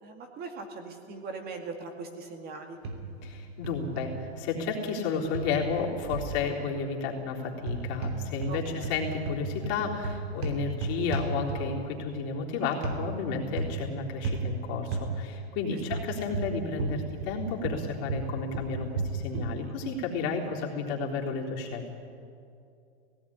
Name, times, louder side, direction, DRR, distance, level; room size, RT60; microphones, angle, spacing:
voice 1, 0.0-2.8 8.5-8.9, right 4 dB, 30° right, 4 dB, 2.1 m, -40 dB
sound 1, 2.8-3.3 3.6-4.1 5.3-6.4 7.6-8.6 8.8-11.9 12.8-13.0 13.6-13.9 14.2-14.5 14.9-15.1 15.9-17.4 17.6-19.6, right 4 dB, 70° right, 3.3 m, -33 dB
voice 2, 3.2-21.9, left 5 dB, 45° left, -2 dB, 3.7 m, -32 dB
17.5 x 15.5 x 10.0 m, 2.6 s
hypercardioid pair, 135°, 33 cm